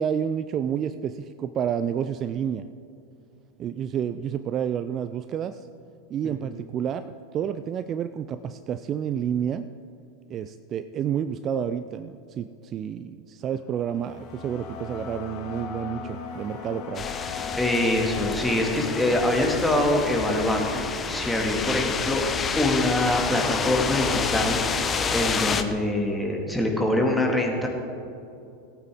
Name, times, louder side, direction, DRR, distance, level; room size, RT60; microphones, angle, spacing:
voice 1, 0.0-2.7 3.6-5.7 6.1-7.1 7.3-9.7 10.3-17.1, right 8 dB, 35° right, 11 dB, 0.3 m, -29 dB
voice 2, 6.2-6.6 17.6-22.2 22.6-24.6 25.1-27.7, left 1 dB, 5° left, 0 dB, 1.9 m, -24 dB
sound 1, 13.4-23.7, left 5 dB, 45° left, 1.5 m, -39 dB
sound 2, 16.9-25.6, left 5 dB, 25° left, 0.8 m, -29 dB
17.5 x 8.9 x 3.6 m, 2.6 s
figure-of-eight pair, 85°, 0 cm